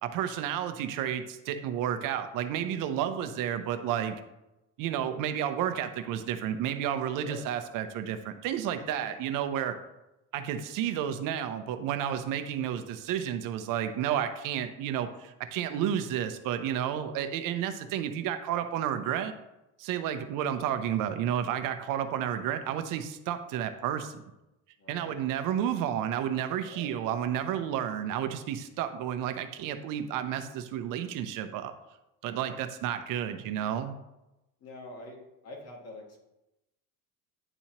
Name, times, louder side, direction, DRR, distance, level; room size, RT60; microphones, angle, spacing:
voice 1, 0.0-4.2 4.8-9.8 10.3-19.3 19.8-24.2 24.9-31.7 32.2-34.0, right 10 dB, 65° right, 9 dB, 0.7 m, -31 dB
voice 2, 24.8-25.2 26.6-26.9 32.3-32.6 34.6-36.2, left 2 dB, 45° left, 0 dB, 1.8 m, -46 dB
9.9 x 4.3 x 2.9 m, 0.95 s
cardioid pair, 125°, 35 cm